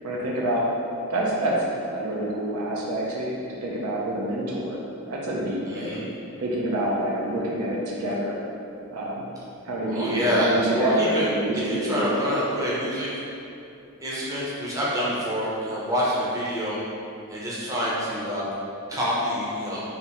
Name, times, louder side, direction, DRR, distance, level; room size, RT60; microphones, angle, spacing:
voice 1, 0.0-0.6 1.1-4.8 5.1-6.0 6.4-8.4 8.9-9.3 9.6-12.1, right 1 dB, 85° right, -4 dB, 0.5 m, -27 dB
voice 2, 5.7-6.0 9.9-11.3 11.7-13.1 14.0-16.8 17.3-18.4 18.9-19.8, equal, 15° right, -7 dB, 0.5 m, -26 dB
3.4 x 2.6 x 2.8 m, 2.7 s
head